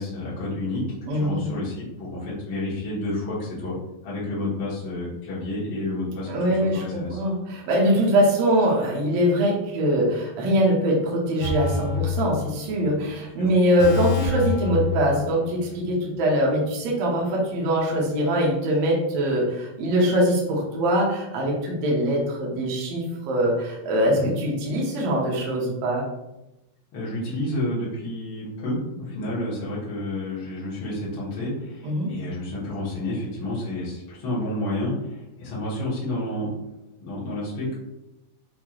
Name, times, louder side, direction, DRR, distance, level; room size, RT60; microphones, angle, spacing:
voice 1, 0.0-3.8 4.0-7.2 13.4-13.5 24.1-24.3 26.9-36.5 37.0-37.7, left 1 dB, 85° left, -7 dB, 1.0 m, -30 dB
voice 2, 1.1-1.4 6.3-26.0 31.8-32.1, equal, 75° right, -3 dB, 1.5 m, -23 dB
sound 1, 11.4-13.0 13.2-13.4 13.8-15.7 16.0-16.1, left 4 dB, 70° left, 1.6 m, -27 dB
6.7 x 2.9 x 2.4 m, 0.93 s
omnidirectional pair, 4.4 m